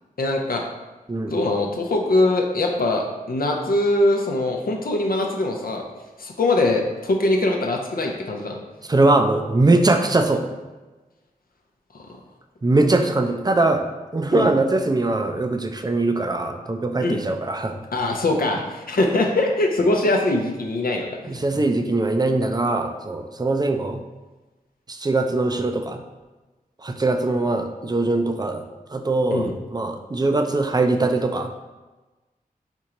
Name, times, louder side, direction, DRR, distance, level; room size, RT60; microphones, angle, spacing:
voice 1, 0.2-0.6 1.3-5.8 6.2-8.6 14.3-14.5 17.0-17.2 17.9-21.1 29.3-29.5, left 2 dB, 80° left, 1 dB, 0.6 m, -22 dB
voice 2, 8.9-10.4 12.6-13.8 14.1-17.7 21.3-24.0 24.9-26.0 26.8-28.6 28.9-31.5, right 2 dB, 25° right, 5 dB, 0.4 m, -21 dB
4.4 x 3.7 x 2.9 m, 1.2 s
wide cardioid pair, 65°, 15 cm